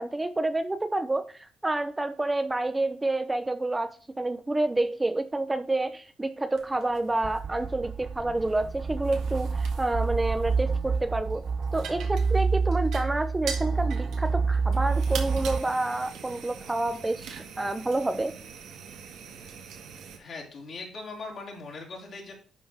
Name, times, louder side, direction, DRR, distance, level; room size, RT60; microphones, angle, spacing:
voice 1, 0.0-11.4 11.7-18.3, right 2 dB, 15° right, 10 dB, 0.8 m, -29 dB
sound 1, 6.5-20.2, right 6 dB, 80° right, 1.9 m, -44 dB
sound 2, 7.2-15.6, right 4 dB, 40° right, 0.4 m, -28 dB
voice 2, 20.2-22.3, left 3 dB, 55° left, -1 dB, 4.0 m, -40 dB
11.0 x 3.8 x 6.5 m, 0.39 s
cardioid pair, 90°, 0 cm